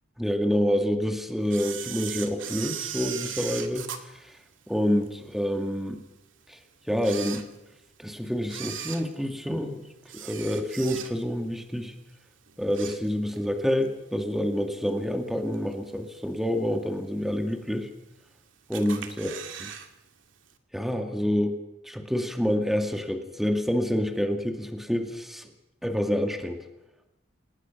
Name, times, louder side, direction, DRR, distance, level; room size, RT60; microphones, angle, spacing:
voice 1, 0.2-3.9 4.7-6.0 6.5-6.6 6.9-7.5 8.0-9.8 10.1-11.9 12.6-17.9 18.7-19.7 20.7-25.5 25.8-26.6, equal, ahead, 5 dB, 2.2 m, -27 dB
Camera, 1.5-5.1 5.6-5.7 6.4-6.5 6.9-8.0 8.4-11.4 11.8-12.1 12.4-13.5 13.8-13.9 14.9-15.0 15.5-15.9 16.4-16.5 16.7-16.8 16.9-17.0 17.8-18.3 18.7-19.9 20.1-20.2 20.5-20.6, right 9 dB, 70° right, 2.4 m, -38 dB
28.5 x 19.5 x 6.1 m, 0.91 s
head